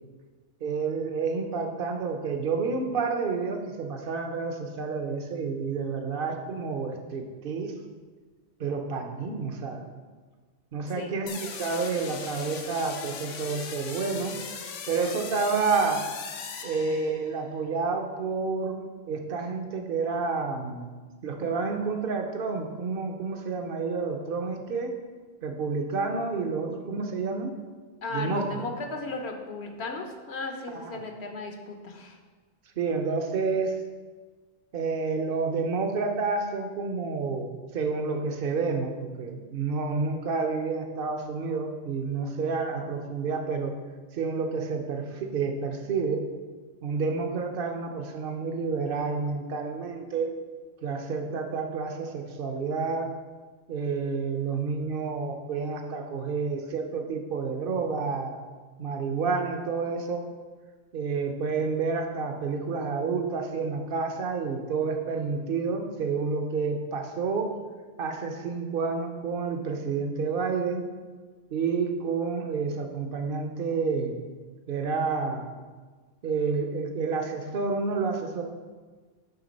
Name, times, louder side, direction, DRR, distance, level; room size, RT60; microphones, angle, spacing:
voice 1, 0.6-7.8 8.6-9.9 10.7-14.4 14.9-16.0 16.6-18.8 19.1-20.9 21.2-25.0 25.4-27.5 28.1-28.6 30.7-30.8 32.8-33.8 34.7-43.7 44.1-46.3 46.8-50.4 50.8-53.1 53.7-58.4 58.8-60.3 60.9-67.5 68.0-70.8 71.5-74.1 74.7-75.5 76.2-78.4, right 4 dB, 55° right, 4 dB, 0.9 m, -29 dB
sound 1, 11.3-17.4, left 6 dB, 85° left, 1.1 m, -39 dB
voice 2, 28.0-32.2, left 3 dB, 65° left, 4 dB, 1.1 m, -36 dB
8.6 x 3.6 x 5.2 m, 1.4 s
omnidirectional pair, 1.2 m